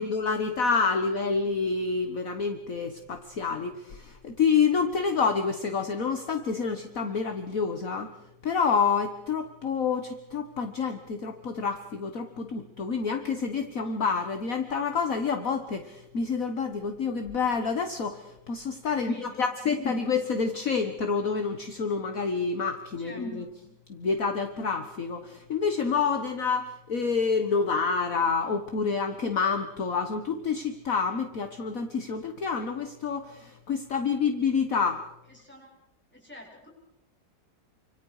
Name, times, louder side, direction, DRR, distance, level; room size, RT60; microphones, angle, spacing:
voice 1, 0.0-8.1 8.4-23.5 23.9-35.0, left 5 dB, 50° left, 6 dB, 1.8 m, -28 dB
voice 2, 18.9-19.8 23.0-23.5 35.3-35.8 36.1-36.7, left 1 dB, 5° left, -3 dB, 7.8 m, -49 dB
29.0 x 26.5 x 5.0 m, 0.94 s
omnidirectional pair, 1.9 m